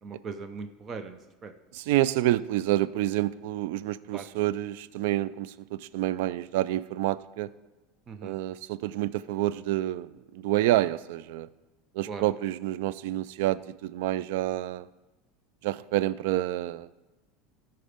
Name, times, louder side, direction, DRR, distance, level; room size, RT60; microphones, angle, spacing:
voice 1, 0.0-1.5 4.1-4.2 8.1-8.4 12.1-12.2, right 5 dB, 35° right, 9 dB, 0.7 m, -39 dB
voice 2, 1.7-7.5 8.2-11.5 11.9-14.9 15.6-16.9, right 14 dB, 70° right, 18 dB, 0.3 m, -28 dB
13.0 x 4.6 x 5.1 m, 1.1 s
hypercardioid pair, 95°, 0 cm